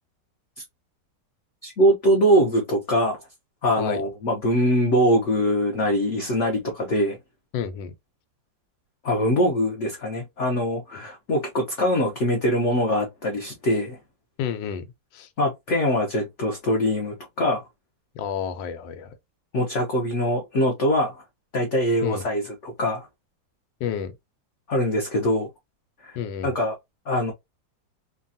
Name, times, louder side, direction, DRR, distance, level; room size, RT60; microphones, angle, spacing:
voice 1, 1.6-3.3 3.6-7.2 9.0-14.0 15.4-17.6 19.5-21.2 21.5-23.1 24.7-25.5 26.0-26.2 26.4-26.7 27.1-27.3, equal, 55° left, 0.8 m, -23 dB
voice 2, 7.5-7.9 10.9-11.0 14.4-14.9 15.1-15.3 18.1-19.2 22.0-22.3 23.8-24.1 26.1-26.6, left 8 dB, 85° left, 1.3 m, -30 dB
3.2 x 2.3 x 2.6 m
omnidirectional pair, 2.0 m